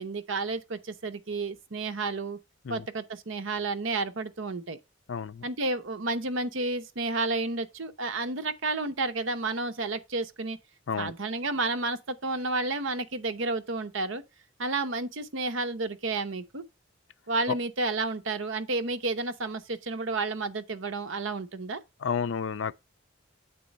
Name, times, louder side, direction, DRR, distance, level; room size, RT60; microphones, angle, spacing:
voice 1, 0.0-2.4 2.7-4.8 5.4-10.6 11.0-14.2 14.6-16.6 17.3-21.8, right 3 dB, 75° right, 0.8 m, -31 dB
voice 2, 5.1-5.4 10.9-11.1 17.5-17.6 22.0-22.7, left 6 dB, 70° left, 0.5 m, -30 dB
8.4 x 4.1 x 5.2 m
head